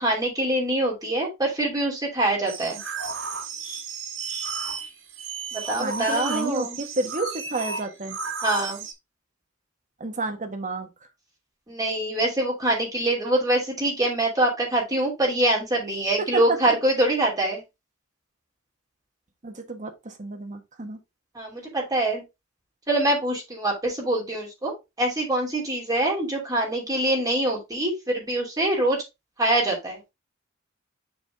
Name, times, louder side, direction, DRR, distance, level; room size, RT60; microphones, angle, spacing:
voice 1, 0.0-2.8 5.5-6.8 8.4-8.8 11.7-17.6 21.3-22.2 22.9-29.0 29.4-30.0, right 1 dB, 20° right, 2.8 m, -24 dB
sound 1, 2.5-8.9, right 5 dB, 85° right, 1.7 m, -33 dB
voice 2, 5.7-8.2 10.0-10.9 16.3-16.7 19.4-21.0, right 2 dB, 40° right, 1.3 m, -30 dB
7.0 x 4.2 x 3.4 m
head